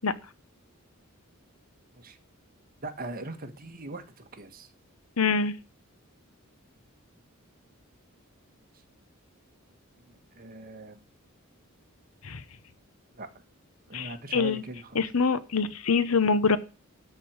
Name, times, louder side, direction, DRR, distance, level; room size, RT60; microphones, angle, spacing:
voice 1, 2.8-4.7 10.0-11.0 13.1-13.4 13.9-15.0, right 2 dB, 40° right, 6 dB, 1.6 m, -41 dB
voice 2, 5.2-5.5 12.2-12.4 13.9-14.6 14.9-16.6, left 5 dB, 80° left, 15 dB, 1.0 m, -25 dB
13.5 x 4.6 x 8.7 m, 0.33 s
head